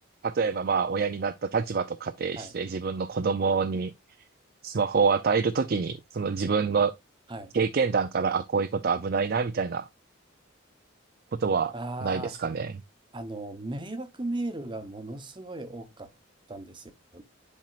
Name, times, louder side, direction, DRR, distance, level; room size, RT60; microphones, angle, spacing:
voice 1, 0.2-3.9 4.6-6.9 7.5-9.9 11.3-11.7 12.0-12.7, right 5 dB, 50° right, 0.5 m, -26 dB
voice 2, 11.7-12.4 13.1-16.1 16.5-17.2, right 2 dB, 25° right, 0.9 m, -36 dB
10.5 x 4.4 x 2.5 m
head